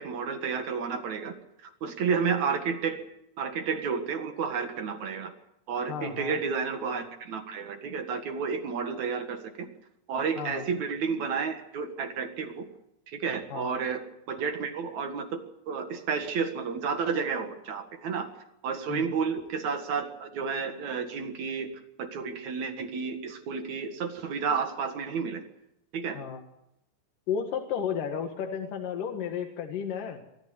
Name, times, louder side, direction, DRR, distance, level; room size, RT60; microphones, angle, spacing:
voice 1, 0.0-1.3 1.6-3.0 3.4-5.3 5.7-9.7 10.1-12.7 13.1-14.0 14.3-18.3 18.6-21.7 22.0-25.4 25.9-26.2, right 6 dB, 55° right, 7 dB, 2.7 m, -31 dB
voice 2, 5.9-6.4 10.4-10.7 13.5-13.8 18.9-19.1 26.1-26.4 27.3-30.2, left 7 dB, 60° left, 3 dB, 3.1 m, -33 dB
23.5 x 14.0 x 9.6 m, 0.82 s
omnidirectional pair, 4.5 m